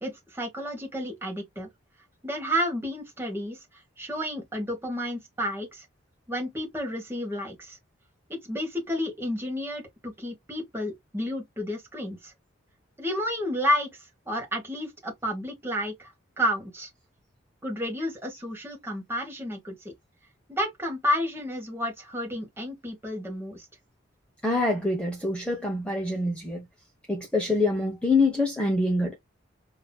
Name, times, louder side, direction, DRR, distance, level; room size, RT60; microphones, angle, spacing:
voice 1, 0.0-1.7 2.2-3.6 4.0-5.8 6.3-7.8 8.3-12.3 13.0-13.9 14.3-16.9 17.6-19.9 20.5-23.6, equal, 10° right, 1.2 m, -31 dB
voice 2, 24.4-26.6 27.1-29.2, left 2 dB, 5° left, 0.8 m, -25 dB
5.6 x 2.8 x 2.3 m
head